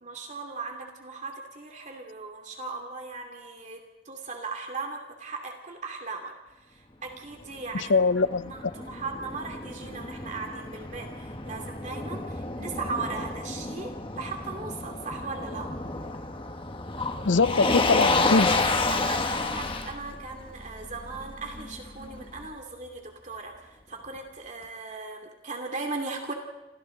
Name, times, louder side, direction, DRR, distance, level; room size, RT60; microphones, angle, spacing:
voice 1, 0.0-6.3 6.7-8.1 8.4-15.7 18.9-26.3, right 4 dB, 40° right, 2.7 m, -38 dB
Motor vehicle (road), 7.4-22.5, left 3 dB, 30° left, 1.5 m, -30 dB
voice 2, 7.7-8.5 17.2-18.7, left 4 dB, 80° left, 0.7 m, -23 dB
29.5 x 27.5 x 3.9 m
head